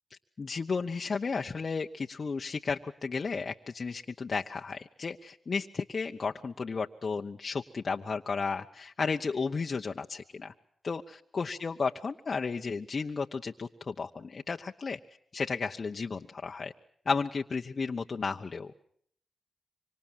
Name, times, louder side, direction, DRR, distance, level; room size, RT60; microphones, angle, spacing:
voice 1, 0.4-10.5 10.8-15.0 15.3-16.7 17.1-18.7, left 4 dB, 55° left, 3 dB, 1.0 m, -33 dB
25.5 x 25.5 x 7.5 m, 0.65 s
supercardioid pair, 45°, 0 cm